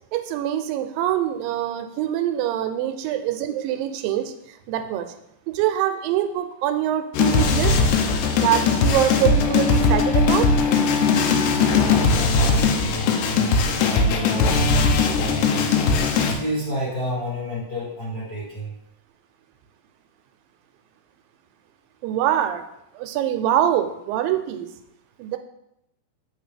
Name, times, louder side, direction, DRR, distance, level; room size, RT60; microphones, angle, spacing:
voice 1, 0.1-4.3 4.7-5.1 5.5-7.8 8.3-10.5 22.0-22.6 23.0-24.7 25.2-25.4, right 11 dB, 90° right, 8 dB, 2.3 m, -24 dB
sound 1, 7.1-16.3, left 4 dB, 80° left, 2.1 m, -19 dB
voice 2, 11.5-15.8 16.2-18.8, equal, 45° left, -9 dB, 1.2 m, -30 dB
7.4 x 4.3 x 3.3 m, 0.81 s
omnidirectional pair, 3.9 m